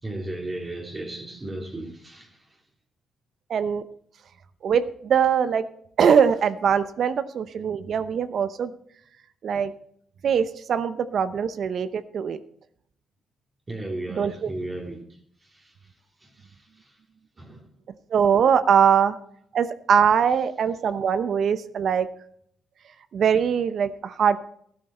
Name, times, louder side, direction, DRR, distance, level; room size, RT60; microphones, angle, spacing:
voice 1, 0.0-2.6 13.7-17.0 17.4-17.7, right 1 dB, 25° right, 2.9 m, -36 dB
voice 2, 3.5-3.8 4.6-5.7 6.0-8.7 9.4-9.7 10.2-12.4 14.2-14.5 18.1-19.2 19.5-22.1 23.1-24.4, right 7 dB, 60° right, 0.8 m, -22 dB
12.5 x 12.0 x 4.3 m
cardioid pair, 90°, 0 cm